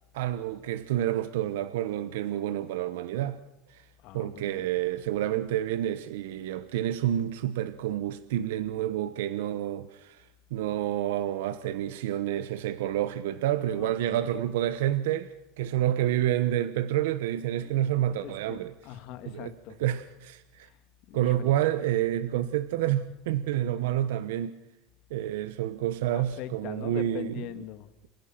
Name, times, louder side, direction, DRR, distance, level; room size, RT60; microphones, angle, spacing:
voice 1, 0.1-3.4 3.7-3.8 4.1-15.3 15.6-18.7 19.3-19.5 19.8-20.7 21.1-24.6 25.1-27.3, right 12 dB, 90° right, 1.0 m, -29 dB
voice 2, 4.0-4.7 12.8-13.0 13.7-14.3 15.7-15.8 17.6-19.8 20.6-20.8 21.1-21.5 26.1-27.9, left 11 dB, 55° left, 2.1 m, -42 dB
29.0 x 16.5 x 5.9 m
supercardioid pair, 135°, 0 cm